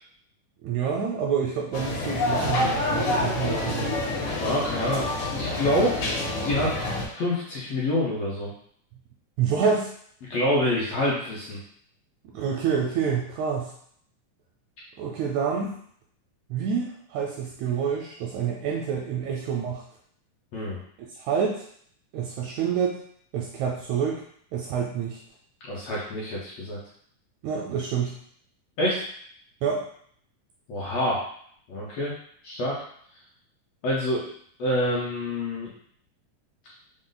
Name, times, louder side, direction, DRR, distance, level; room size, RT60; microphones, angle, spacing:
voice 1, 0.6-4.0 9.4-9.9 12.3-13.7 15.0-15.8 16.5-19.8 21.2-21.6 22.1-23.0 23.3-24.2 24.5-25.2 27.4-28.1 29.6-29.8, right 7 dB, 80° right, -1 dB, 1.7 m, -27 dB
sound 1, 1.7-7.1, left 2 dB, 90° left, 2.7 m, -27 dB
voice 2, 4.4-5.9 6.4-6.7 7.1-8.5 10.3-11.6 20.5-20.8 25.7-26.8 28.8-29.0 30.7-31.3 31.7-32.1 32.4-32.7 33.8-34.3 34.6-35.7, left 1 dB, 70° left, -6 dB, 1.7 m, -26 dB
5.3 x 2.1 x 3.8 m, 0.62 s
omnidirectional pair, 3.7 m